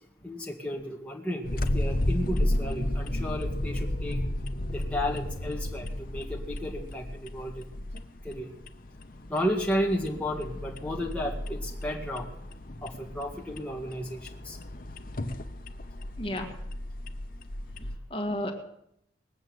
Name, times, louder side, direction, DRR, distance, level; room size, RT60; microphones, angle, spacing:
voice 1, 0.2-4.2 4.7-7.7 8.2-8.5 9.3-12.3 12.8-14.6, equal, 5° left, -2 dB, 1.8 m, -33 dB
sound 1, 1.4-18.0, left 1 dB, 50° left, 0.9 m, -33 dB
voice 2, 16.2-16.6 17.8-18.5, left 1 dB, 30° left, 2 dB, 2.0 m, -33 dB
20.5 x 8.0 x 7.9 m, 0.76 s
head